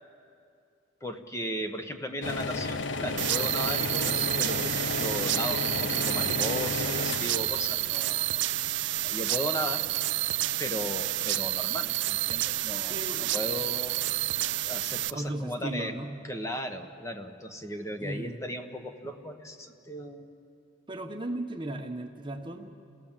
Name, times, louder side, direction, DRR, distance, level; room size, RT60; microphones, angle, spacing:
voice 1, 1.0-8.4 9.0-9.8 10.6-13.0 13.3-14.1 14.7-15.9 16.2-20.3, equal, 15° left, 5 dB, 1.1 m, -36 dB
sound 1, 2.2-9.1, left 3 dB, 70° left, 0.7 m, -33 dB
sound 2, 3.2-15.1, right 15 dB, 65° right, 0.5 m, -29 dB
voice 2, 12.9-13.5 15.1-16.3 18.0-18.4 19.0-19.1 20.9-22.8, right 1 dB, 25° right, 5 dB, 0.9 m, -36 dB
28.5 x 16.5 x 7.4 m, 2.5 s
head